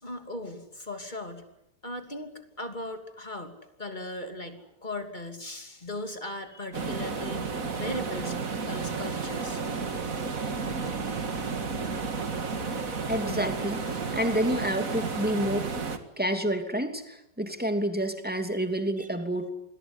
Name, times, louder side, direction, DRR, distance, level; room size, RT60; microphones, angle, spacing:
voice 1, 0.0-1.4 1.8-8.4 8.7-9.6 10.4-10.6 19.0-19.1, left 1 dB, 25° left, 7 dB, 3.0 m, -38 dB
sound 1, 6.7-16.0, right 4 dB, 50° right, 2.4 m, -32 dB
voice 2, 13.1-15.9 16.2-19.5, right 1 dB, 5° right, 7 dB, 2.7 m, -29 dB
27.5 x 21.0 x 9.8 m, 0.82 s
omnidirectional pair, 1.9 m